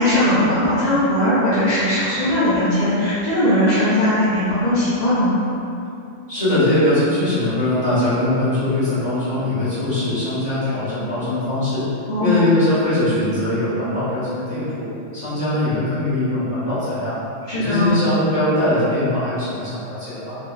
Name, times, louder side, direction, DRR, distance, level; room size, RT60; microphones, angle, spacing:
voice 1, 0.0-5.4 12.1-12.4 17.5-18.0, left 1 dB, 45° left, -14 dB, 0.7 m, -19 dB
voice 2, 6.3-11.8 12.2-14.9 15.1-17.2 17.5-20.4, left 1 dB, 25° left, -14 dB, 1.6 m, -21 dB
3.7 x 2.6 x 2.3 m, 2.6 s
omnidirectional pair, 1.4 m